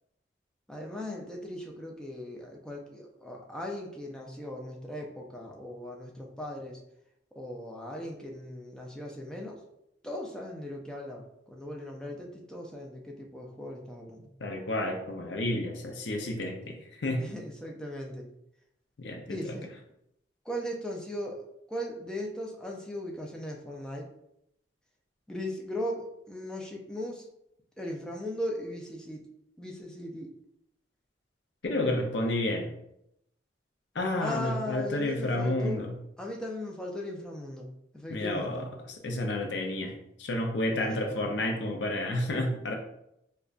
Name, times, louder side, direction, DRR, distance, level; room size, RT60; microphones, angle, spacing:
voice 1, 0.7-6.8 7.4-9.6 10.0-14.3 17.2-18.3 19.3-19.7 20.4-24.1 25.3-27.3 27.8-29.3 29.6-30.3 34.2-35.9 36.2-38.7 40.7-41.3, left 1 dB, 5° left, -1 dB, 0.4 m, -38 dB
voice 2, 14.4-17.3 19.0-19.5 31.6-32.7 33.9-36.0 38.1-42.7, left 1 dB, 65° left, 3 dB, 0.5 m, -31 dB
5.0 x 2.2 x 2.4 m, 0.80 s
head